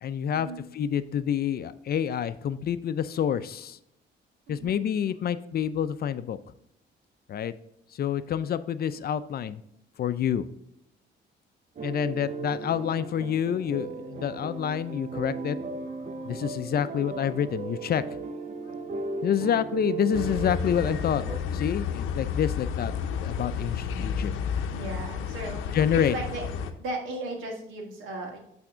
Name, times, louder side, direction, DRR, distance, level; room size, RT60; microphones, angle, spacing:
voice 1, 0.0-3.8 4.5-6.4 7.3-7.5 7.9-9.6 10.0-10.4 11.8-15.6 16.2-18.0 19.2-21.2 21.5-22.9 23.2-24.3 25.7-26.2, left 9 dB, 50° left, 13 dB, 0.5 m, -28 dB
voice 2, 4.5-4.8 24.7-25.6 26.1-26.4 26.8-28.4, right 2 dB, 90° right, 2 dB, 1.8 m, -36 dB
sound 1, 11.8-21.4, right 4 dB, 35° right, 0.7 m, -36 dB
sound 2, 20.1-26.7, left 7 dB, 90° left, 0.7 m, -31 dB
8.8 x 3.5 x 4.9 m, 0.79 s
cardioid pair, 90°, 20 cm